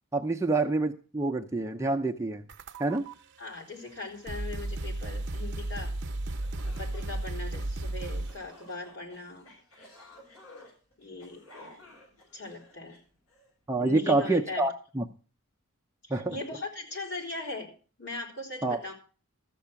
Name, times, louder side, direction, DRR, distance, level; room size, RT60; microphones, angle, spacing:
voice 1, 0.1-2.4 2.8-3.1 13.7-15.0 16.1-16.4 18.6-18.8, right 2 dB, 15° right, 3 dB, 0.6 m, -27 dB
sound 1, 2.5-3.1 3.9-4.0 4.3-8.5, right 1 dB, 55° right, 0.7 m, -34 dB
voice 2, 3.4-5.9 6.6-9.5 11.0-11.9 12.3-13.0 13.8-14.7 16.0-17.7 18.0-18.9, left 2 dB, 55° left, 1 dB, 3.7 m, -39 dB
sound 2, 6.4-13.5, left 1 dB, 80° left, 7.4 m, -54 dB
13.5 x 7.7 x 5.8 m, 0.37 s
head